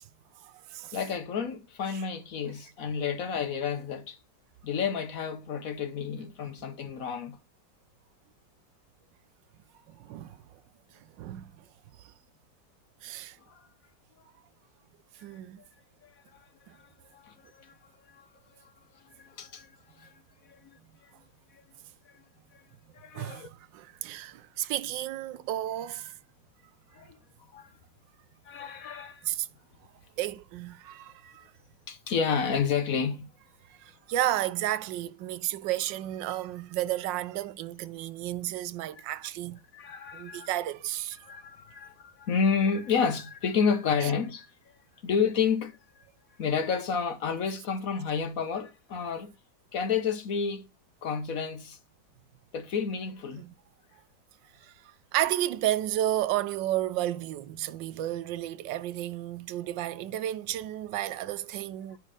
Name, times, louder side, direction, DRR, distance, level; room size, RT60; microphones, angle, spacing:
voice 1, 0.4-1.0 1.9-2.0 9.9-10.4 11.2-11.6 12.0-12.1 13.0-13.4 15.2-15.6 16.7-16.8 23.1-26.2 29.2-29.5 30.2-31.5 33.7-39.6 40.1-41.3 41.7-41.8 44.0-44.1 53.4-53.5 54.6-62.0, right 13 dB, 85° right, 1.3 m, -32 dB
voice 2, 0.9-4.2 4.6-7.4 13.5-13.7 15.2-15.4 16.0-20.1 20.5-21.1 21.5-21.6 22.1-22.2 22.5-22.6 22.9-23.5 26.9-27.2 27.5-27.7 28.4-29.3 31.9-33.3 39.7-40.5 41.2-44.8 45.0-46.0 46.4-49.3 49.7-50.6 51.0-51.8 52.5-53.4, left 6 dB, 55° left, 1.2 m, -31 dB
9.9 x 4.3 x 4.9 m
omnidirectional pair, 1.9 m